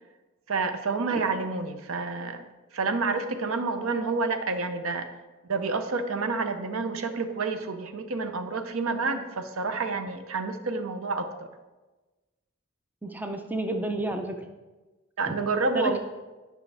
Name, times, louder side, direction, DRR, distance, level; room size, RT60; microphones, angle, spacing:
voice 1, 0.5-2.4 2.7-5.1 5.5-11.5 15.2-16.0, right 3 dB, 80° right, 8 dB, 0.6 m, -29 dB
voice 2, 13.0-14.4 15.3-15.4 15.7-16.0, right 2 dB, 10° right, 5 dB, 0.5 m, -30 dB
9.6 x 5.8 x 3.4 m, 1.2 s
head